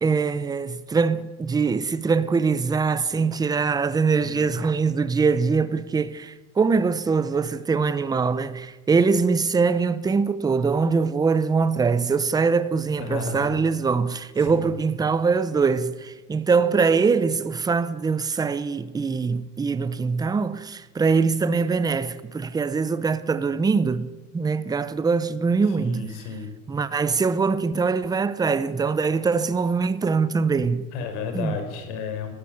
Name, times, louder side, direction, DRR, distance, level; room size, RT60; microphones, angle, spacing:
voice 1, 0.0-26.2 26.7-30.9 31.3-31.5, right 5 dB, 10° right, 0.7 m, -23 dB
voice 2, 4.2-4.6 13.0-13.6 14.4-14.7 25.6-26.5 30.9-32.3, left 5 dB, 80° left, 5.1 m, -33 dB
22.5 x 15.0 x 7.9 m
cardioid pair, 150°, 33 cm